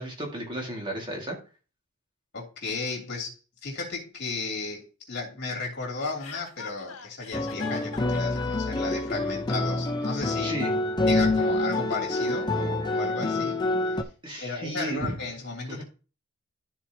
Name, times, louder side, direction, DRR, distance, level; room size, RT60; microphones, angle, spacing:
voice 1, 0.0-1.4 10.4-10.7 14.2-15.2 15.7-15.8, right 1 dB, 25° right, 0 dB, 2.1 m, -33 dB
voice 2, 2.3-3.3 3.6-10.5 11.1-13.6 13.9-14.0 14.4-15.8, left 3 dB, 55° left, -1 dB, 3.0 m, -34 dB
Chuckle chortle, 6.2-8.4, left 6 dB, 80° left, 1.5 m, -41 dB
sound 1, 7.3-14.0, left 2 dB, 20° left, 0.8 m, -27 dB
13.5 x 4.6 x 2.9 m, 0.35 s
head